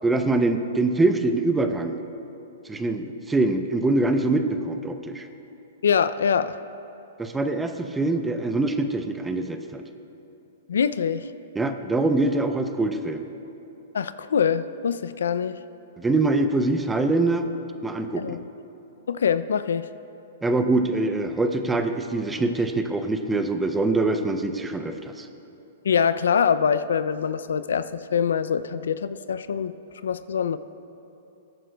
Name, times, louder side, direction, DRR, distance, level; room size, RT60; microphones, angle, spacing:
voice 1, 0.0-2.0 2.7-5.3 7.2-9.8 11.6-13.2 16.0-17.5 17.8-18.4 20.4-25.3, right 2 dB, 10° right, 7 dB, 0.6 m, -24 dB
voice 2, 5.8-6.6 10.7-11.3 13.9-15.6 18.2-18.5 19.1-19.9 25.8-29.7 30.0-30.6, left 7 dB, 80° left, 14 dB, 0.4 m, -24 dB
20.0 x 9.2 x 2.3 m, 2.9 s
hypercardioid pair, 130°, 0 cm